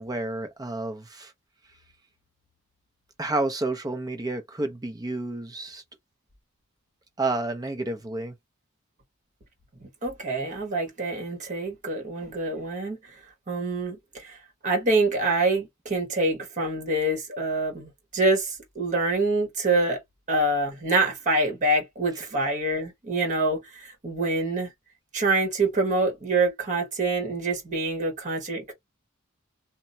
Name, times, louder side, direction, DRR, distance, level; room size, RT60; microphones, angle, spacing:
voice 1, 0.0-1.3 3.2-5.8 7.2-8.4, right 2 dB, 20° right, 0.5 m, -30 dB
voice 2, 9.8-13.0 13.5-14.4 14.6-20.0 20.3-24.7 25.1-28.7, right 2 dB, 35° right, 1.3 m, -26 dB
2.8 x 2.1 x 2.7 m
head